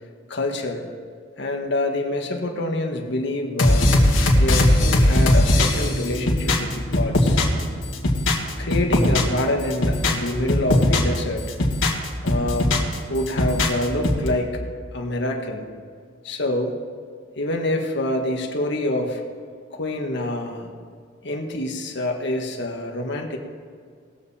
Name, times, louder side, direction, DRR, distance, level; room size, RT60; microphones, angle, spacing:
voice 1, 0.3-0.9 1.4-3.9 4.3-7.4 8.6-11.5 12.2-12.8 13.1-14.6 14.9-15.6 16.2-16.7 17.4-19.2 19.7-20.7 21.2-23.4, left 1 dB, 65° left, 2 dB, 1.5 m, -26 dB
sound 1, 3.6-7.6 7.9-9.4 9.7-11.2 11.5-12.9 13.3-14.3, left 1 dB, 85° left, 1.9 m, -19 dB
19.5 x 7.2 x 4.3 m, 2.1 s
head